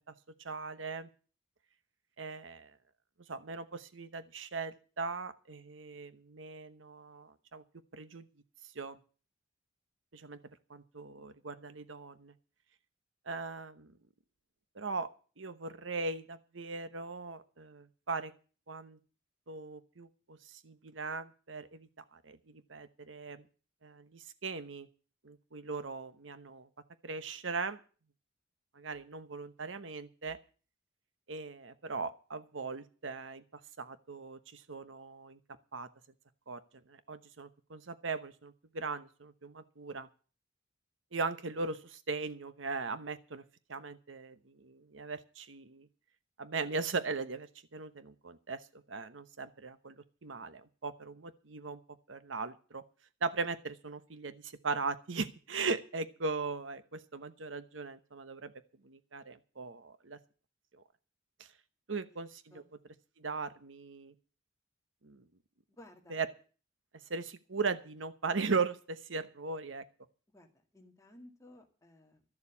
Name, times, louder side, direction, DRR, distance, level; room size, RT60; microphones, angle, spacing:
voice 1, 0.4-1.1 2.2-2.7 3.3-7.6 7.9-8.3 8.7-9.0 10.1-10.4 10.7-12.3 13.3-13.9 14.7-15.1 15.4-18.3 18.7-19.0 19.5-23.5 23.8-24.9 25.2-26.7 27.0-27.8 28.7-30.4 31.3-33.4 33.8-35.4 35.7-35.9 36.5-36.6 36.9-40.1 41.1-43.4 43.7-45.9 46.4-49.9 50.2-51.8 52.1-52.8 53.2-58.5 58.8-60.2 60.7-60.8 61.9-62.6 63.2-64.1 65.0-65.2 66.1-66.3 67.1-69.8, right 4 dB, 85° right, 12 dB, 1.0 m, -39 dB
voice 2, 65.7-66.2 70.3-70.5 70.7-72.2, left 1 dB, 15° left, 3 dB, 2.0 m, -56 dB
13.0 x 7.2 x 8.4 m, 0.39 s
head